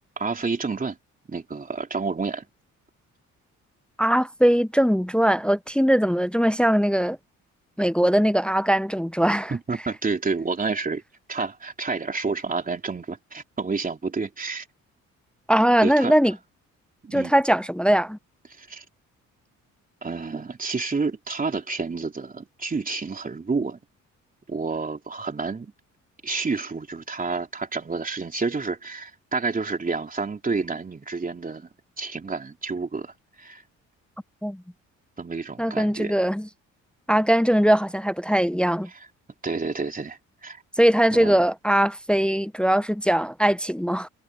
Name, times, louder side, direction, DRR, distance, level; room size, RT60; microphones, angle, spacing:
voice 1, 0.2-1.0 1.3-2.4 9.5-11.0 11.3-14.7 15.8-16.1 17.0-17.3 18.6-18.9 20.0-23.8 24.5-25.7 26.2-31.7 32.0-33.6 35.2-36.1 39.4-40.6 41.1-41.4, right 4 dB, 30° right, 3.5 m, -29 dB
voice 2, 4.0-7.2 7.8-9.5 15.5-16.4 17.1-18.2 34.4-34.6 35.6-36.5 37.1-38.9 40.8-44.1, equal, 5° left, 0.6 m, -21 dB
cardioid pair, 90°, 30 cm